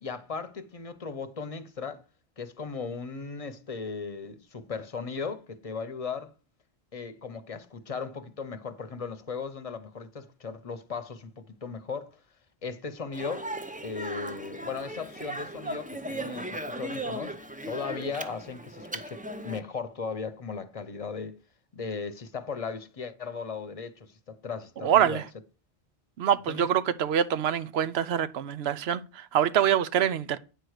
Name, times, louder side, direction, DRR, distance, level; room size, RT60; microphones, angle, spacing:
voice 1, 0.0-2.0 2.4-6.3 6.9-12.2 12.6-13.5 13.8-17.4 17.7-21.4 21.7-25.2 26.5-26.7, left 5 dB, 40° left, 0.8 m, -37 dB
Speech, 13.1-19.6, right 1 dB, 10° right, 0.5 m, -37 dB
voice 2, 24.8-25.2 26.2-30.4, right 9 dB, 80° right, 0.9 m, -25 dB
9.2 x 4.6 x 6.5 m
omnidirectional pair, 1.0 m